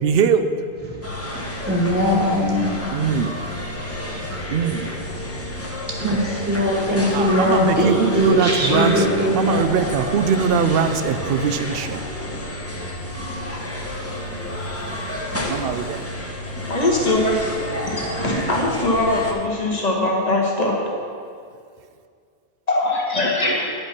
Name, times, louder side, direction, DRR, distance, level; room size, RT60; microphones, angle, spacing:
voice 1, 0.0-0.5 2.9-3.4 4.5-4.9 6.0-6.3 7.1-9.1 9.3-12.0 15.5-16.1, right 6 dB, 70° right, 10 dB, 0.7 m, -21 dB
sound 1, 1.0-19.3, left 1 dB, 15° left, 1.0 m, -30 dB
voice 2, 1.7-2.7 6.0-7.9 8.1-9.8, equal, 10° right, -2 dB, 1.4 m, -20 dB
voice 3, 16.7-17.4 17.9-20.8 22.7-23.7, left 2 dB, 40° left, -2 dB, 1.6 m, -21 dB
9.9 x 5.3 x 5.9 m, 2.2 s
omnidirectional pair, 1.0 m